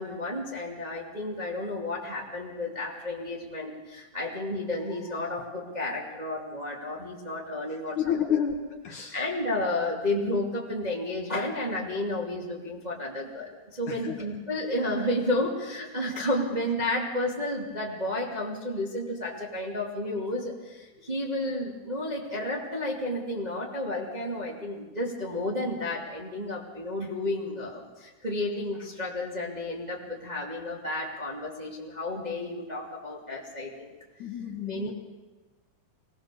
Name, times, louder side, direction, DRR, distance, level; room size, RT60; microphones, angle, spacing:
voice 1, 0.0-8.4 9.1-33.9 34.7-34.9, left 1 dB, 15° right, -3 dB, 1.8 m, -32 dB
voice 2, 7.7-9.2 13.9-14.2 34.2-34.9, left 8 dB, 60° left, 3 dB, 2.3 m, -30 dB
23.0 x 18.5 x 6.9 m, 1.2 s
omnidirectional pair, 4.6 m